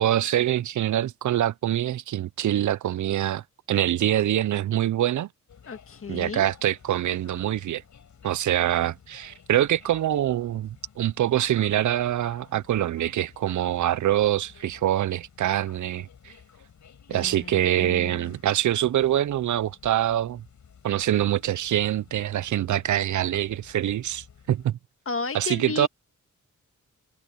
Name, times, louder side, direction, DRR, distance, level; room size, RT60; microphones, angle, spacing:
voice 1, 0.0-5.3 6.1-7.8 8.2-16.3 17.1-20.4 20.8-24.8 25.3-25.9, right 12 dB, 75° right, 0.5 m, -25 dB
sound 1, 5.5-24.7, left 7 dB, 70° left, 6.0 m, -53 dB
voice 2, 5.7-6.5 17.1-18.4 25.1-25.9, left 4 dB, 45° left, 1.8 m, -34 dB
wide cardioid pair, 150°, 31 cm